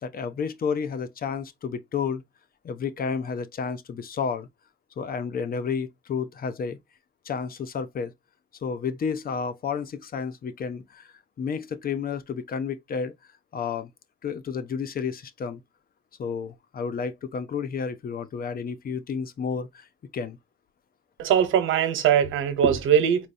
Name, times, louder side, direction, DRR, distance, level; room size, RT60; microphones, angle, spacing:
voice 1, 0.0-2.2 2.6-4.5 5.0-6.8 7.3-8.1 8.6-11.1 11.4-13.1 13.5-13.9 14.2-15.6 16.2-19.8 20.1-20.4, left 6 dB, 50° left, 0.7 m, -31 dB
voice 2, 21.2-23.3, right 9 dB, 85° right, 1.0 m, -21 dB
4.4 x 2.7 x 2.7 m
cardioid pair, 90°, 20 cm